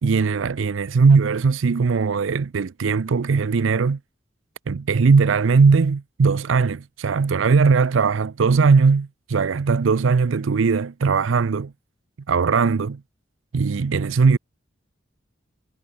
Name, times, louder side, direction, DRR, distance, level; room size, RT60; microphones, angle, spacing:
voice 1, 0.0-4.0 4.7-11.7 12.3-13.0 13.5-14.4, right 5 dB, 85° right, 0.5 m, -19 dB
head